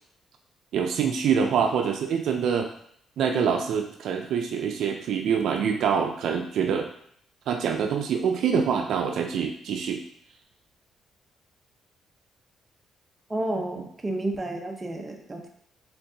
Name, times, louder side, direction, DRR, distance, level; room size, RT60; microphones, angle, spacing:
voice 1, 0.7-2.7 3.2-6.9 7.5-10.0, right 7 dB, 75° right, 3 dB, 0.4 m, -25 dB
voice 2, 13.3-15.5, right 1 dB, 25° right, 3 dB, 0.7 m, -31 dB
4.4 x 3.6 x 2.7 m, 0.66 s
cardioid pair, 90°, 0 cm